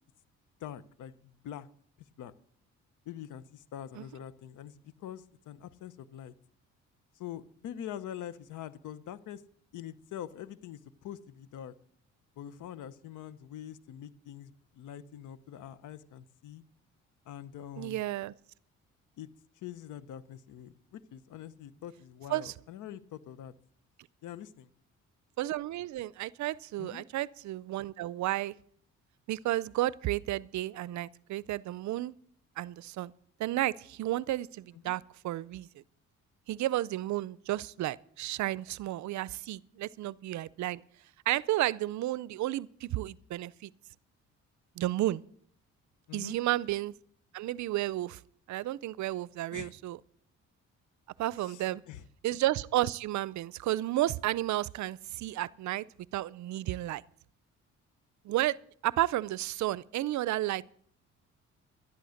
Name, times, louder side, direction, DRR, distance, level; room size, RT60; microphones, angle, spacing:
voice 1, 0.6-1.7 2.2-2.3 3.1-6.3 7.2-9.4 9.7-11.7 12.4-16.6 17.3-18.0 19.2-19.3 19.6-23.5 24.2-24.7 26.8-27.1 34.7-35.0 46.1-46.4 49.5-49.7 51.4-52.0, left 10 dB, 80° left, 0.9 m, -44 dB
voice 2, 17.8-18.3 22.3-22.5 25.4-28.5 29.3-32.1 32.6-33.1 33.4-35.7 36.5-40.8 41.3-43.7 44.8-45.2 46.1-46.9 47.3-48.2 48.5-50.0 51.2-51.8 52.2-55.9 56.1-57.0 58.2-58.6 58.8-60.6, right 15 dB, 70° right, 0.5 m, -32 dB
12.0 x 11.5 x 6.4 m
cardioid pair, 90°, 30 cm